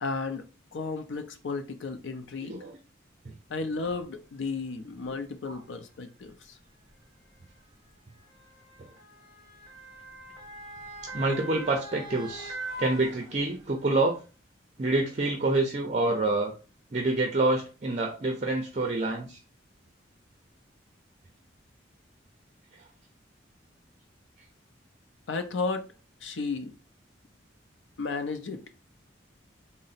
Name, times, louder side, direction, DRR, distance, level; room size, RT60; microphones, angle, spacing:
voice 1, 0.0-2.6 3.5-6.6 25.3-25.9 26.2-26.7 28.0-28.6, left 4 dB, 85° left, 7 dB, 0.5 m, -33 dB
voice 2, 2.4-2.8 5.5-5.6 11.1-14.1 14.8-16.5 16.9-19.4 22.7-22.8, right 2 dB, 40° right, 2 dB, 0.5 m, -27 dB
Motor vehicle (road) / Siren, 3.9-4.0 4.9-5.1 6.2-13.8 14.2-14.3, right 1 dB, 5° right, 1.2 m, -42 dB
3.8 x 2.1 x 4.0 m, 0.33 s
head